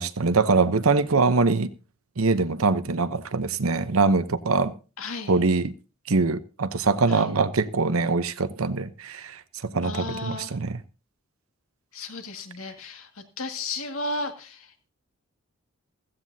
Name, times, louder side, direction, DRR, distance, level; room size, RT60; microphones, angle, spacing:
voice 1, 0.0-1.7 2.2-4.7 5.3-5.7 6.1-10.8, right 4 dB, 80° right, 0.9 m, -23 dB
voice 2, 5.0-5.4 7.1-7.3 9.8-10.5 11.9-13.1 13.4-14.9, left 2 dB, 75° left, 2.1 m, -34 dB
15.5 x 15.0 x 2.8 m
head